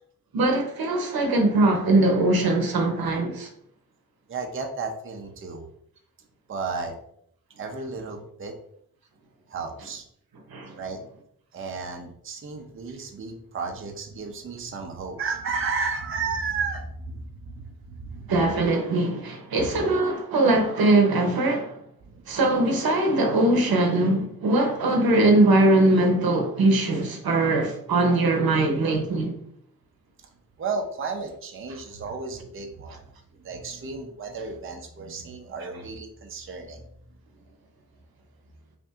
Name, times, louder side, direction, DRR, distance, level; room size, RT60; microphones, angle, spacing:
voice 1, 0.3-3.5 10.5-10.8 18.3-21.8 22.3-29.3, right 2 dB, 85° right, 0.8 m, -21 dB
voice 2, 4.3-5.6 6.5-6.9 7.6-8.5 9.5-10.0 10.8-11.0 11.5-18.3 22.0-22.3 28.1-28.2 30.6-33.0 33.4-36.9, right 4 dB, 35° right, 0.5 m, -33 dB
5.3 x 2.6 x 2.4 m
wide cardioid pair, 135°, 35 cm